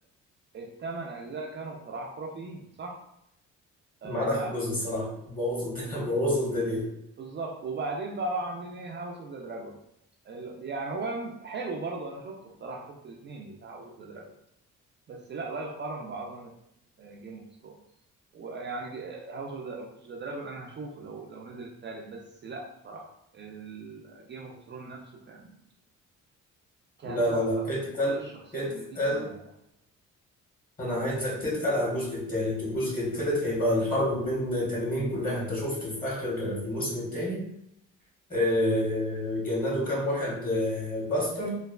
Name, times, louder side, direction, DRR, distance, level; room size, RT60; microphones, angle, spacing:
voice 1, 0.5-3.0 4.0-4.5 7.2-9.8 10.2-14.3 15.1-16.5 17.0-17.8 18.3-25.6 27.0-27.7 28.0-29.4, right 3 dB, 40° right, -1 dB, 0.4 m, -38 dB
voice 2, 4.0-6.9 27.0-28.2 28.5-29.3 30.8-37.4 38.3-41.6, left 1 dB, 30° left, -4 dB, 1.3 m, -28 dB
3.1 x 2.2 x 2.2 m, 0.80 s
cardioid pair, 90°, 30 cm